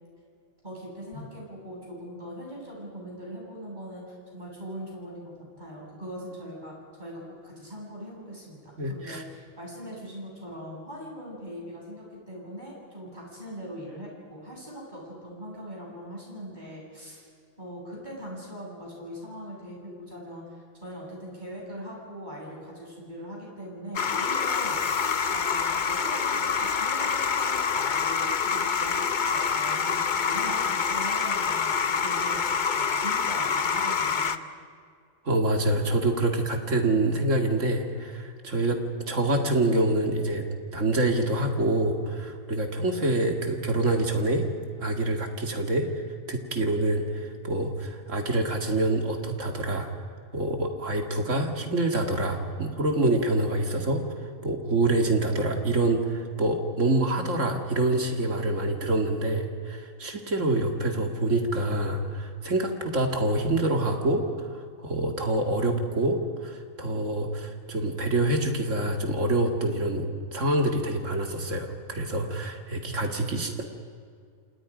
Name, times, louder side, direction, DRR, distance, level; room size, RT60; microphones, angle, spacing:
voice 1, 0.6-17.3 17.6-30.0 30.3-32.4 32.7-34.4, equal, 35° right, -3 dB, 7.7 m, -41 dB
voice 2, 8.8-9.2 35.3-38.8 39.1-40.4 40.7-44.5 44.8-45.9 46.3-49.9 50.3-54.0 54.4-73.6, right 2 dB, 65° right, 3 dB, 2.7 m, -26 dB
sound 1, 23.9-34.4, left 6 dB, 40° left, 0.8 m, -26 dB
29.0 x 27.0 x 5.2 m, 2.1 s
omnidirectional pair, 1.4 m